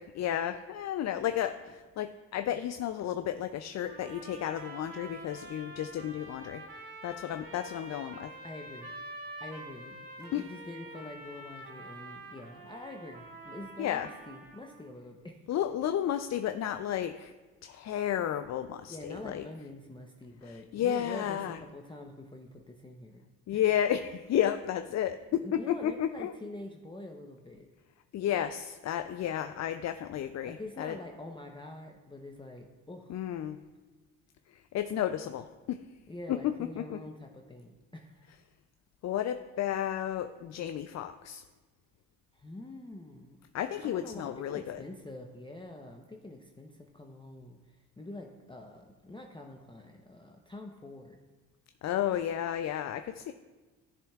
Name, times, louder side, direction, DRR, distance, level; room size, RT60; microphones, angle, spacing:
voice 1, 0.0-6.7 7.0-8.3 10.3-10.4 13.8-14.1 15.5-17.3 17.6-19.5 20.4-21.6 23.5-26.3 28.1-31.0 33.1-33.6 34.5-35.8 36.3-37.0 39.0-41.4 43.5-44.8 51.8-53.3, left 10 dB, 45° left, 9 dB, 0.4 m, -32 dB
sound 1, 3.9-14.9, right 1 dB, 55° right, 1.5 m, -47 dB
voice 2, 8.4-8.9 9.4-15.4 18.9-23.2 25.4-27.7 30.4-33.2 36.1-38.3 42.3-43.4 43.8-51.2, left 2 dB, 10° left, 2 dB, 0.7 m, -45 dB
13.5 x 7.0 x 2.4 m, 1.3 s
supercardioid pair, 60°, 42 cm